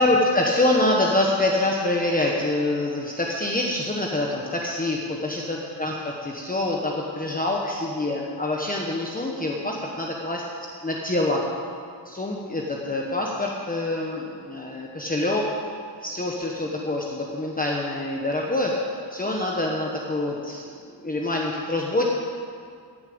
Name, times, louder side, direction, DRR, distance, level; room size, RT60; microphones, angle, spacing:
voice 1, 0.0-10.4 10.8-11.4 12.1-15.6 16.0-18.7 19.1-20.7 21.0-22.1, left 2 dB, 20° left, -1 dB, 1.1 m, -25 dB
14.0 x 7.3 x 8.5 m, 2.3 s
wide cardioid pair, 170°, 43 cm